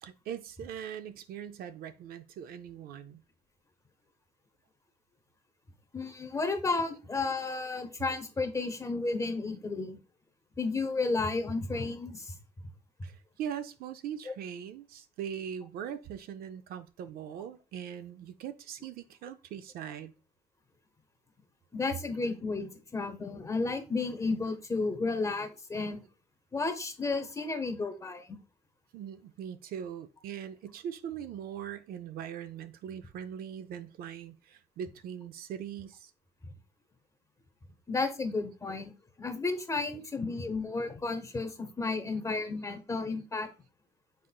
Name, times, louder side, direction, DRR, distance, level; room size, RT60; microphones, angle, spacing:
voice 1, 0.0-3.2 13.0-20.1 28.9-36.1, right 9 dB, 65° right, 0.4 m, -41 dB
voice 2, 5.9-10.0 10.6-12.4 21.7-26.0 26.5-28.4 37.9-38.9 39.2-43.5, left 3 dB, 20° left, 0.9 m, -32 dB
5.5 x 3.7 x 2.3 m
cardioid pair, 110°, 17 cm